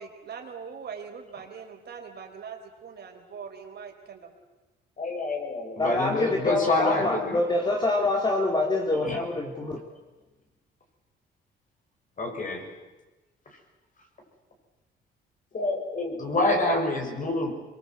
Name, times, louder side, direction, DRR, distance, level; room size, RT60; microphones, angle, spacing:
voice 1, 0.0-4.3, right 6 dB, 55° right, 3 dB, 4.4 m, -42 dB
voice 2, 5.0-7.4 9.0-9.2 12.2-12.7 15.5-17.5, left 2 dB, 40° left, 2 dB, 6.9 m, -27 dB
voice 3, 5.8-9.8, left 2 dB, 20° left, 2 dB, 3.1 m, -26 dB
24.0 x 23.0 x 8.0 m, 1.1 s
cardioid pair, 90°, 20 cm